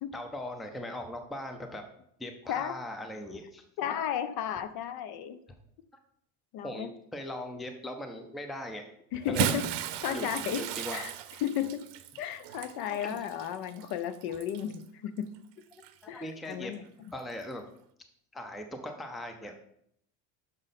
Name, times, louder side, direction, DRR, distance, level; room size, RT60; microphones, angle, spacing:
voice 1, 0.1-1.8 2.2-3.6 6.6-8.8 9.3-9.6 10.1-10.3 10.5-11.0 12.9-13.2 16.0-16.7 17.1-17.6 18.3-19.6, left 1 dB, ahead, 6 dB, 0.4 m, -39 dB
voice 2, 3.8-5.4 6.5-6.9 9.1-9.6 10.0-10.6 10.9-11.1 11.4-11.8 12.2-15.3 16.1-16.8, left 10 dB, 50° left, 13 dB, 0.6 m, -34 dB
Bathtub (filling or washing) / Splash splatter, 9.1-14.8 15.7-15.9 17.3-17.4, right 10 dB, 55° right, 0.7 m, -35 dB
6.6 x 4.9 x 4.1 m, 0.70 s
supercardioid pair, 120°, 48 cm